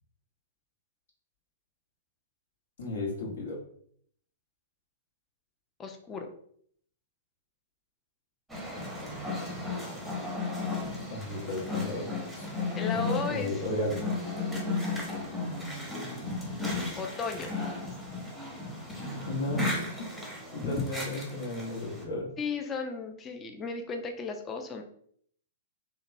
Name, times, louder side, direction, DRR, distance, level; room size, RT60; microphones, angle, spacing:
voice 1, 2.8-3.6 11.1-12.5 12.9-13.0 13.3-14.1 19.3-20.1 20.5-22.3, left 1 dB, 65° left, -2 dB, 1.0 m, -34 dB
voice 2, 5.8-6.3 12.8-13.7 17.0-17.5 20.6-20.9 22.4-24.8, left 4 dB, 20° left, 4 dB, 0.4 m, -34 dB
sound 1, 8.5-22.0, left 3 dB, ahead, 0.8 m, -35 dB
2.8 x 2.2 x 2.6 m, 0.62 s
figure-of-eight pair, 110°, 0 cm